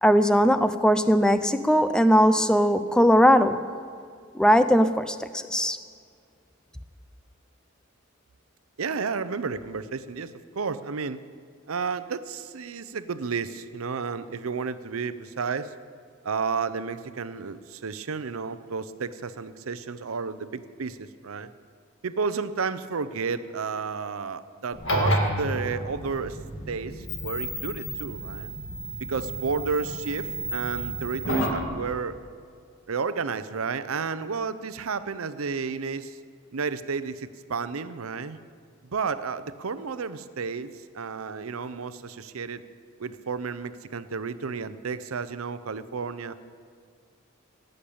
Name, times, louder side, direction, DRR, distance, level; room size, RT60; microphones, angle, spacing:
voice 1, 0.0-3.6 4.3-5.8, equal, 5° left, 11 dB, 0.5 m, -19 dB
voice 2, 8.8-11.2 11.7-15.7 16.2-21.5 22.0-26.4 26.7-28.5 29.0-32.2 32.9-36.2 36.5-38.4 38.9-42.6 43.0-46.3, right 5 dB, 85° right, 13 dB, 0.6 m, -32 dB
sound 1, 24.7-31.6, equal, 60° left, 2.2 m, -30 dB
17.0 x 6.7 x 8.6 m, 2.2 s
head